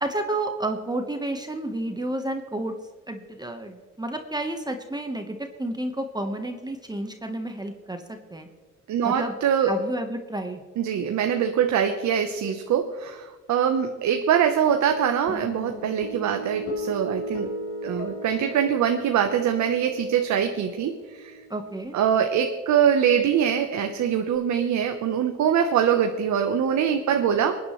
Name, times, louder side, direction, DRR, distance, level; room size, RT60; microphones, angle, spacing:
voice 1, 0.0-2.7 3.1-8.5 9.0-9.3 9.7-10.6 21.5-22.0, right 1 dB, 15° right, 5 dB, 1.2 m, -31 dB
voice 2, 8.9-9.7 10.8-17.5 17.8-21.4 21.9-27.6, right 8 dB, 70° right, 5 dB, 1.0 m, -23 dB
sound 1, 15.3-21.9, equal, 80° left, 4.8 m, -37 dB
25.5 x 9.7 x 3.2 m, 1.4 s
cardioid pair, 90°, 30 cm